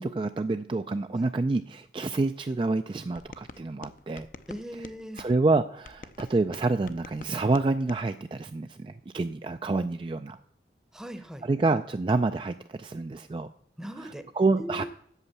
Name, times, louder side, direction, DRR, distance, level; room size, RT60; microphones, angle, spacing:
voice 1, 0.0-4.3 5.2-10.4 11.4-13.5 14.0-14.8, right 3 dB, 30° right, 8 dB, 0.3 m, -28 dB
sound 1, 3.2-5.3 5.8-8.0, left 3 dB, 50° left, 0.5 m, -47 dB
voice 2, 4.5-5.3 10.9-11.5 13.8-14.2 14.6-14.8, equal, 5° right, 9 dB, 0.8 m, -39 dB
8.2 x 7.7 x 7.1 m, 0.69 s
head